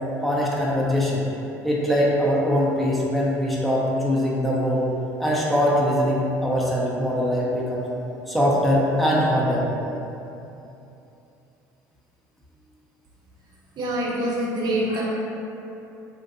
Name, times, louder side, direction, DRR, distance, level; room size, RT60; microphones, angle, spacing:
voice 1, 0.2-1.2 1.6-4.8 5.2-7.9 8.3-9.6, equal, ahead, -6 dB, 0.5 m, -22 dB
voice 2, 13.8-15.0, right 1 dB, 45° right, -5 dB, 0.6 m, -25 dB
2.6 x 2.2 x 2.5 m, 2.8 s
hypercardioid pair, 65°, 10 cm